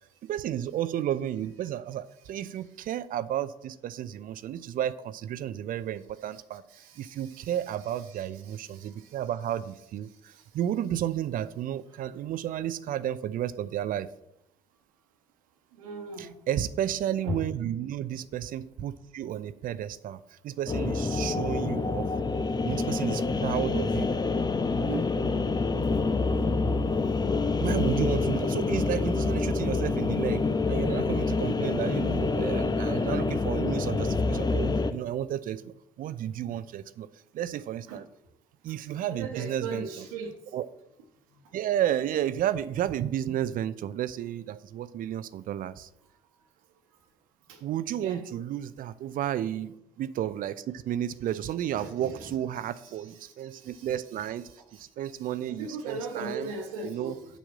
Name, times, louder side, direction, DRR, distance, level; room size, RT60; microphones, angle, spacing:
voice 1, 0.2-6.6 7.0-14.1 16.2-22.1 22.6-24.1 27.6-37.1 37.3-38.1 38.6-40.0 40.5-40.7 41.5-45.9 47.6-54.5 55.0-56.5 56.8-57.2, right 11 dB, 55° right, 15 dB, 0.6 m, -32 dB
voice 2, 6.7-7.5 8.7-9.1 15.8-16.4 17.2-17.4 24.9-25.2 37.9-38.0 39.1-40.4 47.5-47.6 48.0-48.2 51.8-52.2 53.2-53.9 54.7-54.8 55.5-57.2, right 3 dB, 80° right, 4 dB, 1.2 m, -38 dB
sound 1, 20.7-34.9, left 3 dB, 25° left, 0.8 m, -27 dB
7.2 x 5.6 x 7.5 m, 0.83 s
hypercardioid pair, 50°, 17 cm